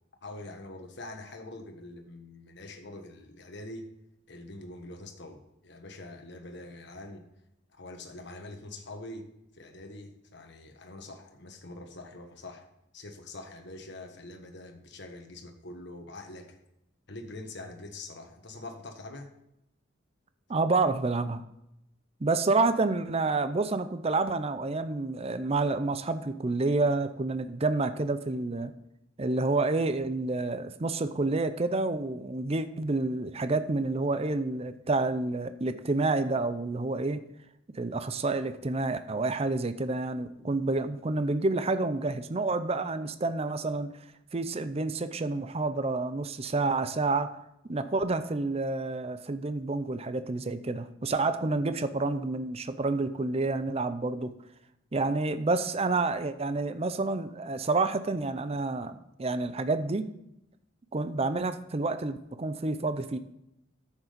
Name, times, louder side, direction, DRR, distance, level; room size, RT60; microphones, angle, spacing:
voice 1, 0.2-3.9 4.3-7.2 7.7-12.6 12.9-16.6 17.1-19.3, left 2 dB, 60° left, 4 dB, 1.4 m, -44 dB
voice 2, 20.5-21.4 22.2-28.7 29.2-37.2 37.8-43.9 44.3-47.3 47.7-54.3 54.9-60.1 60.9-63.2, right 3 dB, 30° right, 11 dB, 0.5 m, -29 dB
9.8 x 7.3 x 5.1 m, 0.82 s
head